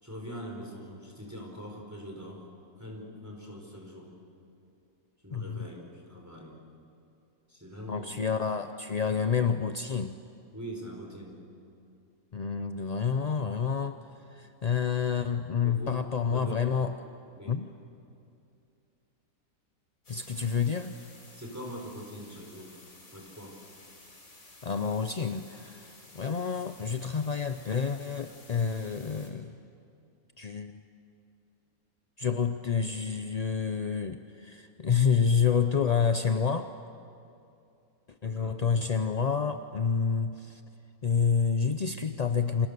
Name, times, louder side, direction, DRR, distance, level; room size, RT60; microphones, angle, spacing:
voice 1, 0.0-2.5 2.8-4.1 5.2-6.6 7.5-8.1 10.5-11.4 15.6-16.0 16.3-16.6 17.3-17.6 21.3-22.8 23.1-23.5 38.2-38.6, equal, 10° right, 0 dB, 4.7 m, -42 dB
voice 2, 7.9-10.1 12.3-14.0 14.3-16.9 17.5-17.7 20.1-20.9 24.6-25.9 26.1-29.5 30.4-30.8 32.2-36.7 38.2-40.6 41.0-42.7, left 6 dB, 50° left, 8 dB, 0.5 m, -28 dB
sound 1, 20.0-29.3, left 2 dB, 65° left, 3.8 m, -54 dB
29.5 x 27.0 x 6.9 m, 2.6 s
omnidirectional pair, 1.6 m